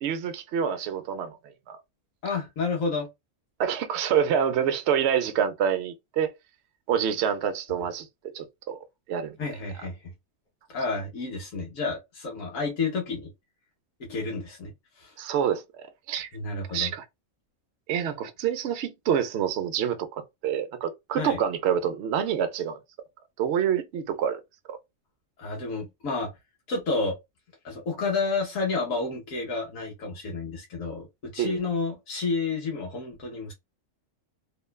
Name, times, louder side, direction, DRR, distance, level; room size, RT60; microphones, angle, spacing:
voice 1, 0.0-1.4 1.7-1.8 3.6-6.3 6.9-8.1 8.3-8.8 9.1-9.4 15.2-16.3 16.7-17.0 17.9-22.8 23.4-24.4 24.7-24.8 31.4-31.6, right 8 dB, 65° right, 0.7 m, -27 dB
voice 2, 2.2-3.1 9.4-9.9 10.7-13.3 14.1-14.7 15.0-15.1 16.3-16.9 21.2-21.4 25.4-26.3 26.7-27.1 27.6-33.5, left 3 dB, 90° left, 1.3 m, -30 dB
3.0 x 2.2 x 2.2 m
omnidirectional pair, 1.4 m